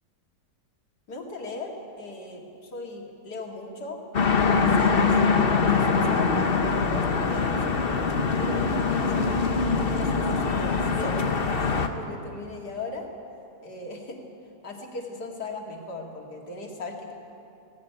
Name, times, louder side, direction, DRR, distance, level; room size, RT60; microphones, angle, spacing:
voice 1, 1.1-5.2 5.7-9.3 9.7-13.1 13.6-14.2 14.6-17.1, left 3 dB, 60° left, 1 dB, 3.0 m, -38 dB
sound 1, 4.1-11.9, left 4 dB, 40° left, 1.0 m, -23 dB
18.0 x 17.5 x 9.4 m, 2.7 s
omnidirectional pair, 2.0 m